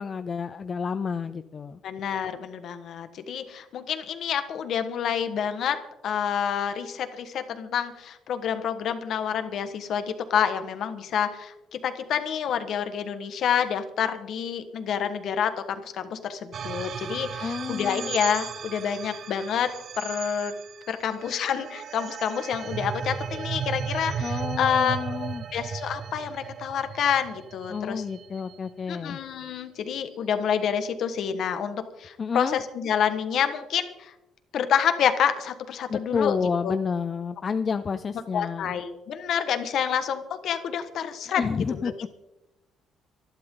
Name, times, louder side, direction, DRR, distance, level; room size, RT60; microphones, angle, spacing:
voice 1, 0.0-1.8 17.4-18.1 24.2-25.5 27.7-29.2 32.2-32.6 35.9-38.7 41.3-41.9, left 5 dB, 25° left, 11 dB, 0.4 m, -30 dB
voice 2, 1.8-5.8 6.0-19.7 19.9-20.5 20.9-25.0 25.5-28.0 28.9-34.1 34.5-36.4 36.6-36.8 38.3-41.4 41.8-42.1, left 8 dB, 50° left, 9 dB, 1.5 m, -28 dB
sound 1, 16.5-29.0, right 7 dB, 40° right, 0.6 m, -36 dB
25.0 x 11.5 x 3.9 m, 0.95 s
cardioid pair, 175°, 0 cm